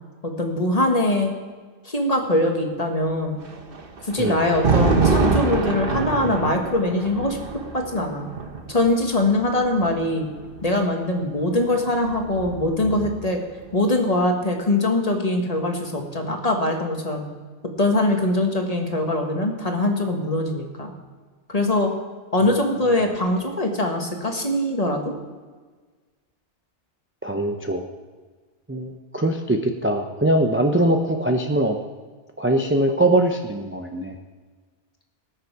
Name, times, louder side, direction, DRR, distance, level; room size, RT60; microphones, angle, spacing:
voice 1, 0.2-1.4 1.8-3.4 4.0-7.4 7.7-8.3 8.7-10.3 10.6-13.4 13.7-17.2 17.8-20.9 21.5-21.9 22.3-25.1, left 1 dB, 35° left, 2 dB, 1.5 m, -22 dB
Thunder, 3.4-10.6 11.7-13.4, right 4 dB, 55° right, 1.3 m, -25 dB
voice 2, 27.2-27.8 28.7-31.8 32.4-34.1, right 1 dB, 15° right, 3 dB, 0.6 m, -22 dB
19.0 x 6.6 x 4.7 m, 1.4 s
omnidirectional pair, 1.2 m